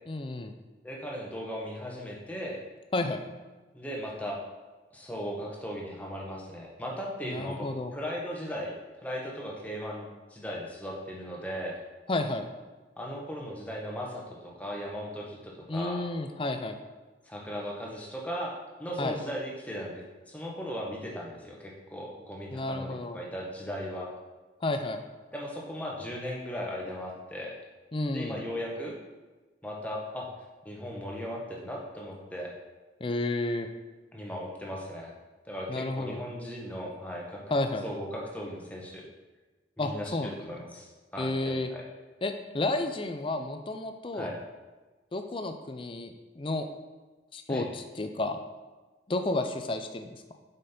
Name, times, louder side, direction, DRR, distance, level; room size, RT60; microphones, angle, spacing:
voice 1, 0.1-0.5 2.9-3.2 7.2-7.9 12.1-12.5 15.7-16.8 19.0-19.2 22.5-23.2 24.6-25.0 27.9-28.4 33.0-33.7 35.7-36.2 37.5-37.9 39.8-40.4 41.2-41.7 42.2-44.3 45.1-46.7 47.3-48.4 49.1-50.2, left 2 dB, 30° left, 7 dB, 0.5 m, -31 dB
voice 2, 0.8-2.6 3.7-4.4 4.9-7.7 7.9-8.7 9.0-11.8 13.0-16.0 17.3-18.5 18.8-24.1 25.3-27.6 28.1-28.9 29.6-30.3 30.6-32.5 34.1-35.1 35.5-37.4 37.8-39.1 39.8-41.8 44.1-44.4 47.5-47.7, equal, 10° left, -2 dB, 1.1 m, -37 dB
7.5 x 5.2 x 4.3 m, 1.2 s
head